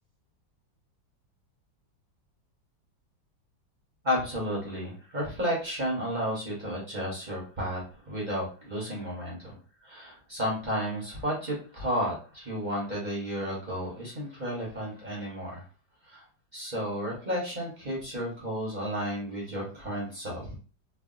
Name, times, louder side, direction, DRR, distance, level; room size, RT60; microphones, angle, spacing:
voice 1, 4.0-9.6 9.8-15.6 16.0-16.2 16.5-20.6, equal, 30° right, -4 dB, 0.9 m, -32 dB
3.3 x 2.4 x 2.5 m, 0.36 s
omnidirectional pair, 2.0 m